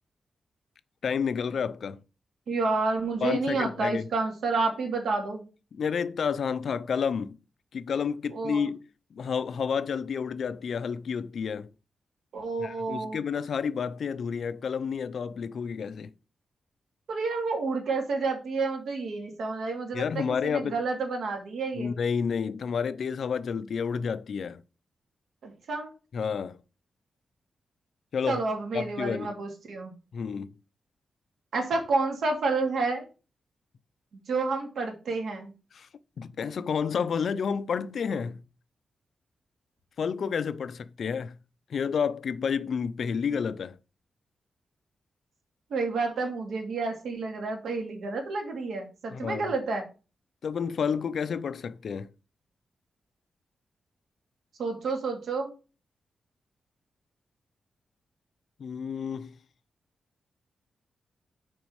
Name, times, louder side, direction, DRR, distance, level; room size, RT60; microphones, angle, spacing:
voice 1, 1.0-2.0 3.2-4.1 5.7-7.4 7.7-8.8 9.1-11.7 12.6-16.1 19.9-20.8 21.8-24.6 26.1-26.6 28.1-28.4 28.7-29.3 30.1-30.5 35.7-35.9 36.2-38.4 40.0-41.4 41.7-43.8 49.1-49.5 50.4-52.1 58.6-59.3, left 6 dB, 60° left, 0.6 m, -30 dB
voice 2, 2.5-5.4 8.3-8.7 12.3-13.2 17.1-21.9 25.4-25.9 28.3-29.9 31.5-33.0 34.3-35.5 45.7-49.8 54.6-55.5, right 3 dB, 80° right, 2.6 m, -30 dB
6.3 x 5.2 x 6.4 m
wide cardioid pair, 155°, 0 cm